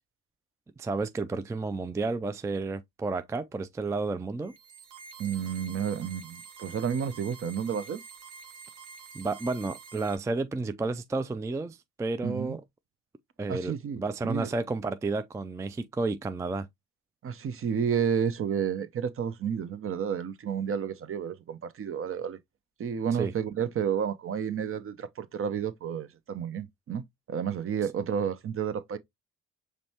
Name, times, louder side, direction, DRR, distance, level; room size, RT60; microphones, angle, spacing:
voice 1, 0.8-4.5 9.1-12.6 13.4-16.7 23.2-23.3, right 3 dB, 10° right, 0.3 m, -31 dB
sound 1, 4.4-10.2, right 5 dB, 85° right, 1.1 m, -48 dB
voice 2, 5.2-8.0 12.2-12.6 13.5-14.5 17.2-22.4 22.8-29.0, right 7 dB, 45° right, 0.7 m, -31 dB
5.2 x 3.1 x 2.8 m
cardioid pair, 90°, 30 cm